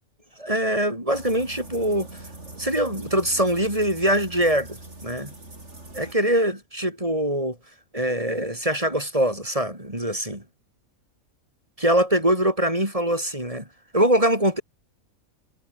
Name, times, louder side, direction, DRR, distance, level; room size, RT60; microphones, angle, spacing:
voice 1, 0.4-2.1 2.5-5.3 5.9-7.6 7.9-10.4 11.8-13.7 13.9-14.6, right 1 dB, 20° right, 7.0 m, -23 dB
sound 1, 1.1-6.1, right 2 dB, 50° right, 5.6 m, -42 dB
omnidirectional pair, 1.5 m